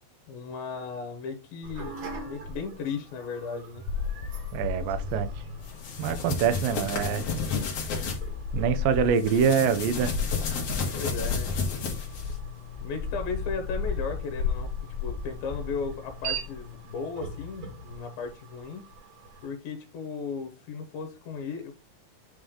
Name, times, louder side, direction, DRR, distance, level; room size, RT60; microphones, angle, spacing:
voice 1, 0.3-2.0 2.3-3.8 10.9-12.0 12.8-14.7 15.0-18.8 19.4-21.7, left 5 dB, 75° left, 2.8 m, -36 dB
sound 1, 1.6-19.5, right 2 dB, 55° right, 2.3 m, -43 dB
sound 2, 3.9-16.8, left 6 dB, 90° left, 2.6 m, -34 dB
voice 2, 4.5-5.3 6.0-7.3 8.5-10.1, right 7 dB, 75° right, 2.3 m, -25 dB
sound 3, 5.7-8.2 9.2-12.3, left 4 dB, 50° left, 2.0 m, -32 dB
9.2 x 3.2 x 3.7 m
omnidirectional pair, 4.4 m